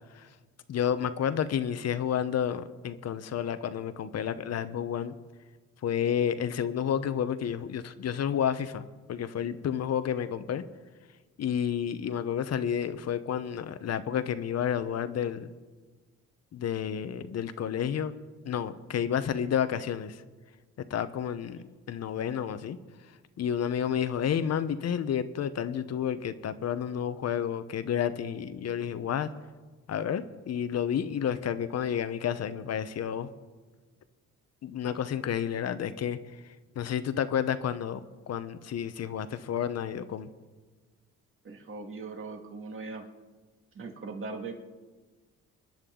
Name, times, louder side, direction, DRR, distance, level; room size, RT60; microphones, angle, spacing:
voice 1, 0.7-5.1 5.8-10.6 11.4-15.5 16.5-18.1 18.4-20.2 20.9-22.8 23.4-29.3 29.9-33.3 34.6-36.2 36.8-40.3, left 8 dB, 55° left, 12 dB, 0.9 m, -30 dB
voice 2, 41.4-43.0 43.7-44.5, right 4 dB, 45° right, 3 dB, 2.2 m, -39 dB
26.5 x 10.5 x 3.8 m, 1.3 s
cardioid pair, 90°, 30 cm